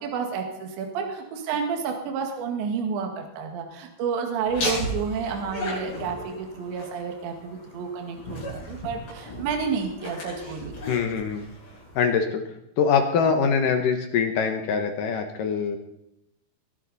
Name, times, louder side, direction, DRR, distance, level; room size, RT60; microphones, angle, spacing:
voice 1, 0.0-8.4 8.7-10.7, right 6 dB, 75° right, 3 dB, 4.0 m, -30 dB
Laughter, 4.5-12.1, left 1 dB, 50° left, 8.4 m, -35 dB
voice 2, 10.9-11.4 12.0-12.4 12.8-15.8, left 6 dB, 70° left, 5 dB, 2.1 m, -23 dB
22.5 x 12.0 x 4.1 m, 0.81 s
omnidirectional pair, 5.2 m